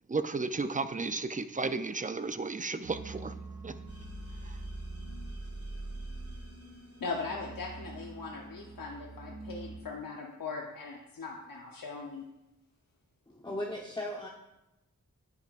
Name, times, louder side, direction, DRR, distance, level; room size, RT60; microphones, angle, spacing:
voice 1, 0.1-3.3 3.6-3.7 4.4-4.5, right 3 dB, 25° right, 10 dB, 0.5 m, -33 dB
sound 1, 2.8-9.8, right 3 dB, 85° right, 1.8 m, -46 dB
sound 2, 3.9-7.4, right 1 dB, 45° right, 1.9 m, -43 dB
voice 2, 7.0-12.3, left 4 dB, 80° left, -1 dB, 0.9 m, -40 dB
voice 3, 13.3-14.3, left 1 dB, 15° left, -1 dB, 0.9 m, -37 dB
10.0 x 9.4 x 2.5 m, 0.94 s
wide cardioid pair, 70°, 33 cm